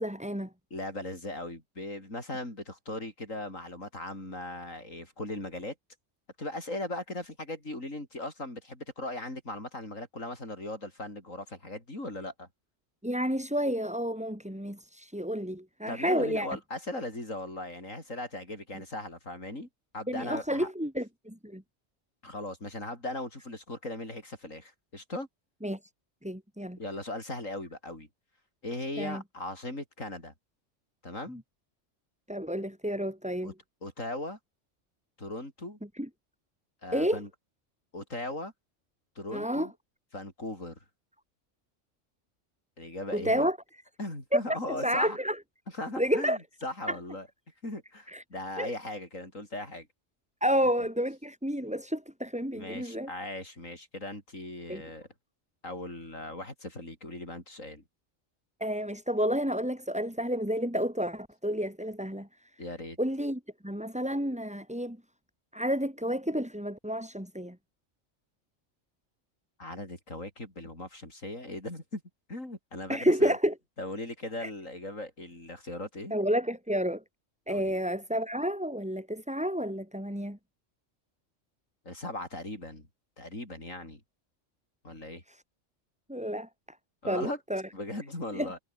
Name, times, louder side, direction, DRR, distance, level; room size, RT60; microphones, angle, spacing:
voice 1, 0.0-0.5 13.0-16.5 20.1-21.6 25.6-25.8 26.2-26.8 29.0-29.2 32.3-33.5 36.0-36.1 36.9-37.2 39.3-39.7 43.1-43.6 44.3-44.4 44.7-45.4 46.0-46.4 46.9-47.0 48.1-48.2 48.6-48.7 50.4-53.1 54.7-54.8 58.6-62.3 63.0-65.0 65.5-67.6 72.9-73.5 74.4-74.5 76.1-77.0 77.5-80.4 85.3-85.4 86.1-86.5 87.1-87.6 88.3-88.5, equal, 5° right, 3.2 m, -30 dB
voice 2, 0.7-5.7 6.4-12.5 15.9-19.7 19.9-20.7 22.2-25.3 26.8-28.1 28.6-30.3 31.0-31.4 33.4-33.5 33.8-34.4 35.2-35.8 36.8-37.3 37.9-38.5 39.2-39.7 40.1-40.8 42.8-43.5 44.0-45.2 45.7-47.3 47.6-49.9 52.5-55.1 55.6-57.8 62.6-63.0 69.6-72.0 72.3-73.3 73.8-76.2 77.5-77.8 81.9-82.9 83.2-84.0 84.8-85.2 87.0-87.4 87.7-88.6, left 1 dB, 85° left, 7.7 m, -38 dB
omnidirectional pair, 1.3 m